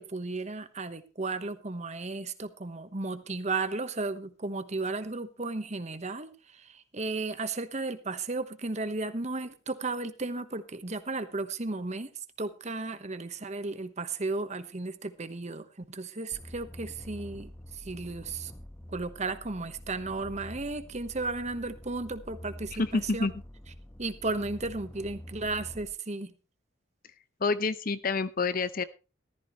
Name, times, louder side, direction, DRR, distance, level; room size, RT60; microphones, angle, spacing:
voice 1, 0.0-12.1 12.4-18.5 18.9-23.3 24.0-26.3, right 3 dB, 35° right, 11 dB, 1.1 m, -34 dB
sound 1, 16.3-25.9, equal, 15° left, 1.0 m, -46 dB
voice 2, 22.8-23.3 27.4-28.8, left 3 dB, 45° left, 14 dB, 0.7 m, -28 dB
15.0 x 13.5 x 3.1 m, 0.31 s
head